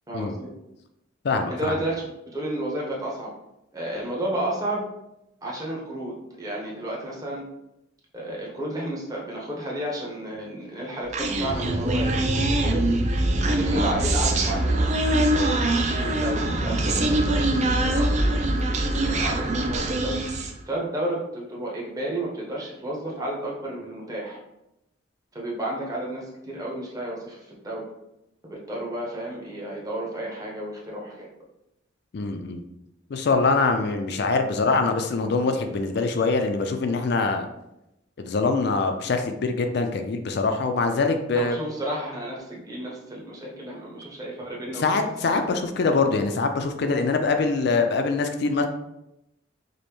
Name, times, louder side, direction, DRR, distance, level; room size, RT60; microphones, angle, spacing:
voice 1, 0.1-0.5 1.5-3.3 3.7-4.9 5.4-7.4 8.1-12.8 13.4-20.2 20.7-24.4 25.3-27.9 28.5-31.3 41.3-45.6, right 1 dB, 20° right, -3 dB, 0.8 m, -32 dB
voice 2, 1.2-1.7 32.1-32.6 33.1-37.5 38.2-41.6 44.8-48.6, left 3 dB, 55° left, 6 dB, 0.4 m, -24 dB
Human voice, 11.1-20.6, right 1 dB, 35° right, 0.4 m, -23 dB
5.2 x 2.1 x 3.0 m, 0.87 s
head